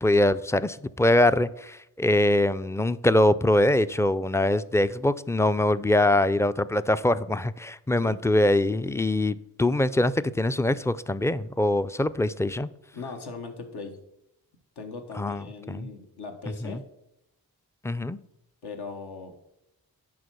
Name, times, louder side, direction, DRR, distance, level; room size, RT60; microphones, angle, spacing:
voice 1, 0.0-12.7 15.2-15.9 16.6-16.8 17.8-18.2, left 1 dB, 10° left, 15 dB, 0.3 m, -23 dB
voice 2, 12.9-14.0 14.8-16.8 18.6-19.4, left 4 dB, 80° left, 4 dB, 1.3 m, -39 dB
10.5 x 3.8 x 6.2 m, 0.84 s
cardioid pair, 50°, 39 cm